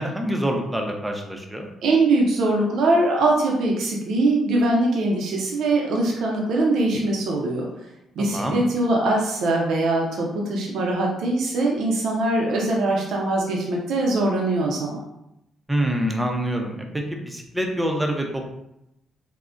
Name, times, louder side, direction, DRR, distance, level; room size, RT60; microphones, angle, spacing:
voice 1, 0.0-1.7 8.2-8.6 15.7-18.5, equal, 10° right, 2 dB, 0.5 m, -26 dB
voice 2, 1.8-7.7 8.2-15.0, right 2 dB, 75° right, -1 dB, 0.5 m, -22 dB
3.5 x 2.0 x 2.4 m, 0.84 s
cardioid pair, 90°, 0 cm